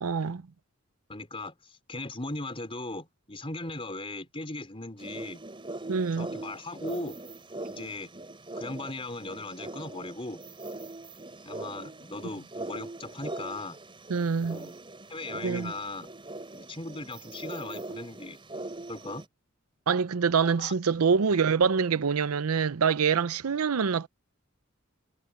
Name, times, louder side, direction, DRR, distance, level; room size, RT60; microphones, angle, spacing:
voice 1, 0.0-0.4 5.9-6.3 14.1-14.6 15.4-15.7 19.9-24.1, right 6 dB, 90° right, 0.6 m, -25 dB
voice 2, 1.1-5.4 6.2-7.2 7.7-8.1 8.6-10.4 11.4-13.8 14.5-14.8 15.1-16.1 16.5-18.4 18.9-19.3 20.6-20.7 23.4-23.6, left 2 dB, 25° left, 4.6 m, -38 dB
sound 1, 5.0-19.2, right 2 dB, 25° right, 4.7 m, -41 dB
head